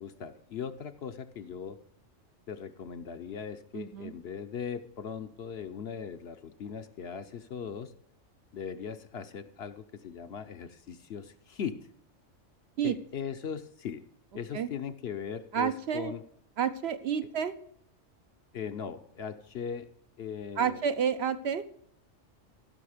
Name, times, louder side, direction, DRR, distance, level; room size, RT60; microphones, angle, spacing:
voice 1, 0.0-1.8 2.5-7.9 8.5-11.8 12.8-14.0 14.3-16.2 18.5-19.9 20.2-20.8, left 7 dB, 60° left, 9 dB, 0.9 m, -39 dB
voice 2, 3.7-4.1 12.8-13.0 14.5-14.7 15.5-16.1 16.6-17.5 20.6-21.6, right 8 dB, 65° right, 10 dB, 0.8 m, -30 dB
15.0 x 6.3 x 4.9 m, 0.69 s
omnidirectional pair, 1.3 m